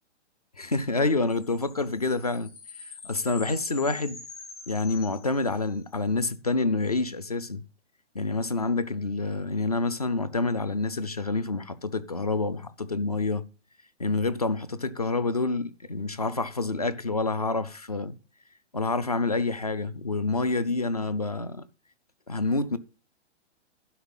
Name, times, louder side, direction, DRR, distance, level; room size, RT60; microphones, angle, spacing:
voice 1, 0.6-2.5 2.8-4.2 4.7-7.6 8.1-13.5 14.0-18.2 18.7-21.6 22.3-22.8, left 3 dB, 35° left, 0.4 m, -28 dB
sound 1, 1.3-5.9, left 5 dB, 85° left, 5.8 m, -45 dB
12.0 x 5.2 x 5.5 m
hypercardioid pair, 175°, 36 cm